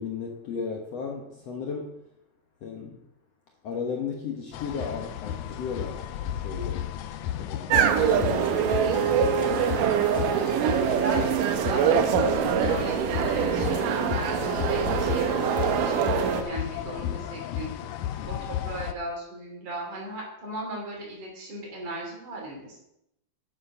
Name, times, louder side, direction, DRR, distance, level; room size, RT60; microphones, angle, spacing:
voice 1, 0.0-1.9 2.6-3.0 3.6-6.1 6.3-6.9 7.4-10.0 18.2-18.5, left 5 dB, 60° left, 0 dB, 1.8 m, -35 dB
sound 1, 4.5-18.9, left 11 dB, 80° left, 1.7 m, -33 dB
sound 2, 7.7-16.4, right 8 dB, 80° right, 2.3 m, -24 dB
voice 2, 11.0-11.3 11.6-17.7 18.3-22.8, right 1 dB, 65° right, -2 dB, 4.5 m, -37 dB
8.9 x 7.6 x 5.6 m, 0.81 s
omnidirectional pair, 4.0 m